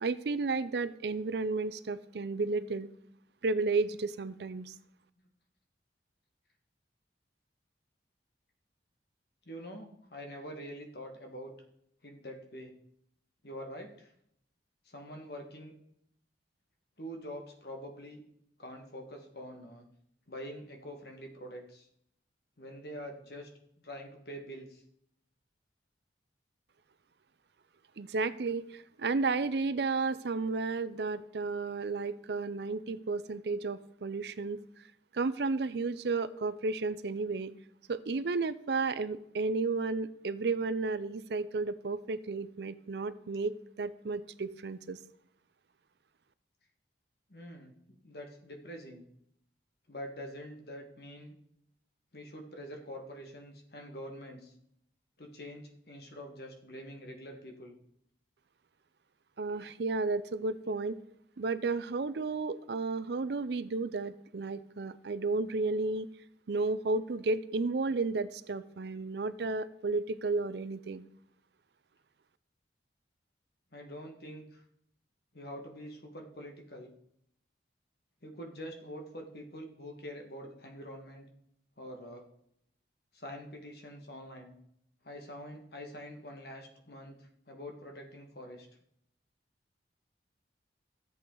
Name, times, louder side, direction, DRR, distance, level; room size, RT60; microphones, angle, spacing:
voice 1, 0.0-2.9 3.4-4.7 28.0-34.6 35.1-37.5 37.9-45.0 59.4-61.0 61.4-66.1 66.5-71.0, right 3 dB, 65° right, 15 dB, 0.5 m, -32 dB
voice 2, 9.4-11.5 12.0-12.7 13.4-14.1 14.8-15.7 17.0-18.2 18.6-19.9 20.3-21.9 22.6-23.5 23.8-24.8 47.3-47.8 48.0-49.0 49.9-51.3 52.1-54.5 55.2-57.7 73.7-74.6 75.3-76.9 78.2-81.3 81.8-82.2 83.1-84.5 85.0-88.7, equal, 55° left, 3 dB, 1.5 m, -45 dB
13.5 x 7.9 x 3.8 m, 0.74 s
head